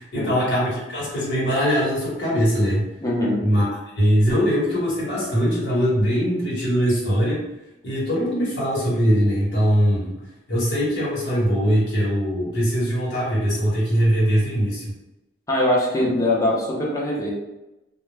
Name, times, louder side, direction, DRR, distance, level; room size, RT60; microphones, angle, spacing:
voice 1, 0.0-2.8 3.4-3.6 4.0-7.4 7.8-10.2 10.5-14.9, equal, 70° left, -7 dB, 1.0 m, -21 dB
voice 2, 3.0-3.4 15.5-17.3, left 1 dB, 20° left, -3 dB, 0.6 m, -22 dB
2.2 x 2.1 x 3.2 m, 0.96 s
head